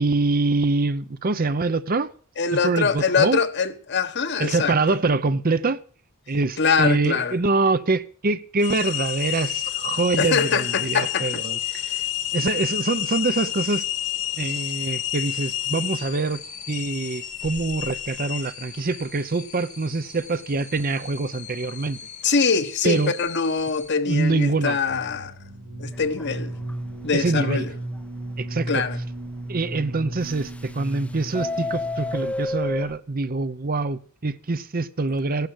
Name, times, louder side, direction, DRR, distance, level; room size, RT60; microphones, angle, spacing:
voice 1, 0.0-2.1 2.5-3.4 4.4-5.8 6.3-11.6 12.3-13.8 14.4-16.4 16.7-22.0 22.8-23.1 24.1-24.8 27.1-27.7 28.4-28.7 29.5-35.5, right 3 dB, 45° right, 0.7 m, -24 dB
voice 2, 2.4-5.0 6.6-7.4 10.2-11.4 22.2-25.3 25.8-26.5 27.0-27.7 28.7-29.0, left 5 dB, 55° left, 1.2 m, -23 dB
sound 1, 8.6-23.9, left 12 dB, 35° left, 1.3 m, -31 dB
sound 2, 24.9-32.5, right 1 dB, 75° right, 2.4 m, -35 dB
Subway metro underground, 25.9-26.3 26.7-26.8 27.1-27.2 27.7-27.8 30.2-30.9 31.2-32.9, left 2 dB, 5° left, 0.6 m, -29 dB
15.5 x 12.0 x 6.3 m
head